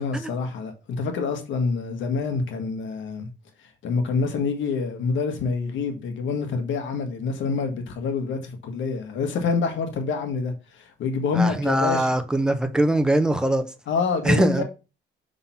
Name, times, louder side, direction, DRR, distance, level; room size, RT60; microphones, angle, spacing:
voice 1, 0.0-3.3 3.8-12.1 13.9-14.6, left 4 dB, 75° left, 1.6 m, -26 dB
voice 2, 11.3-13.7 14.2-14.6, right 1 dB, 5° right, 0.9 m, -22 dB
5.6 x 3.9 x 5.8 m
cardioid pair, 90°, 20 cm